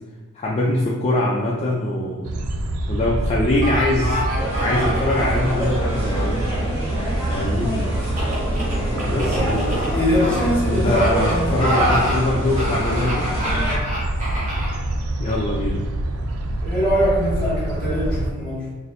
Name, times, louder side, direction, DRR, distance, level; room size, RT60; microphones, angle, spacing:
voice 1, 0.3-2.3 2.9-4.2 4.6-6.4 7.3-7.7 9.1-9.6 10.6-13.3 15.2-15.9, left 1 dB, 30° left, -4 dB, 0.4 m, -23 dB
sound 1, 2.2-18.3, right 1 dB, 80° right, 0.4 m, -25 dB
sound 2, 3.6-5.7 8.0-10.4 10.9-11.3 11.6-12.2 12.6-14.8 15.3-15.4, equal, 35° right, 1.0 m, -28 dB
sound 3, 4.4-13.8, equal, 10° right, 1.0 m, -28 dB
voice 2, 9.1-11.6 16.6-18.7, equal, 5° left, -8 dB, 1.5 m, -23 dB
4.1 x 2.6 x 2.5 m, 1.5 s
head